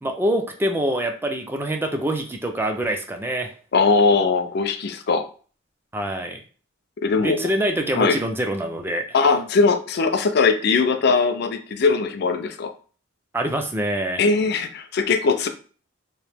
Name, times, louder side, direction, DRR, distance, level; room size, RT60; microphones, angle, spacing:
voice 1, 0.0-3.5 5.9-6.4 7.2-9.1 13.3-14.2, right 1 dB, 10° right, 4 dB, 0.4 m, -25 dB
voice 2, 3.7-5.3 7.0-7.5 7.9-8.2 9.1-12.7 14.2-15.5, left 4 dB, 55° left, 8 dB, 0.4 m, -20 dB
3.0 x 2.7 x 3.3 m, 0.40 s
head